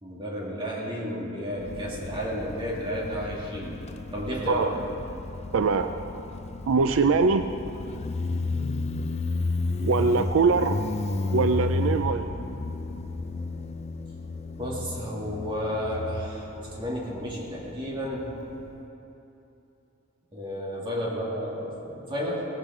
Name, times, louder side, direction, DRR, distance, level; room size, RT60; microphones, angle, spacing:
voice 1, 0.0-3.8 4.1-4.7 10.5-10.7 14.6-18.4 20.3-22.5, equal, 25° right, -4 dB, 2.5 m, -32 dB
Motorcycle, 1.6-18.8, left 3 dB, 35° left, 0.4 m, -33 dB
voice 2, 5.5-5.9 6.7-7.5 9.8-10.8 11.3-12.3, right 4 dB, 80° right, 9 dB, 0.4 m, -22 dB
17.5 x 12.0 x 3.7 m, 2.9 s
head